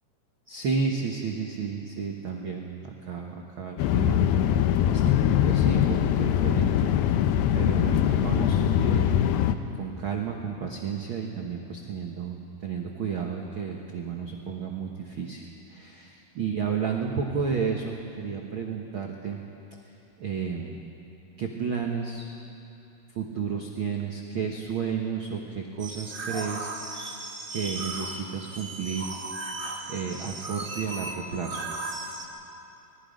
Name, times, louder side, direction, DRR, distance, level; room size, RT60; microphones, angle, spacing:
voice 1, 0.5-4.3 4.9-7.0 7.5-9.1 9.8-19.4 20.2-20.8 21.4-22.3 23.1-26.7 27.5-29.1 29.9-31.6, right 6 dB, 85° right, 1 dB, 1.1 m, -32 dB
sound 1, 3.8-9.5, left 10 dB, 90° left, 2.6 m, -22 dB
sound 2, 25.8-32.3, right 2 dB, 45° right, 0.6 m, -36 dB
25.0 x 20.0 x 5.2 m, 2.9 s
omnidirectional pair, 4.2 m